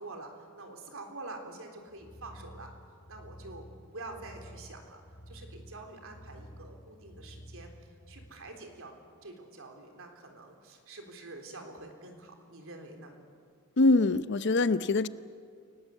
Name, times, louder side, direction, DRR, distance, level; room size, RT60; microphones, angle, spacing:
voice 1, 0.0-2.7 3.1-9.0 9.2-13.2, right 2 dB, 65° right, 3 dB, 3.8 m, -46 dB
sound 1, 1.9-8.3, equal, 30° left, 4.5 m, -50 dB
voice 2, 13.8-15.1, left 2 dB, 55° left, 14 dB, 0.7 m, -24 dB
29.0 x 18.5 x 8.4 m, 2.3 s
head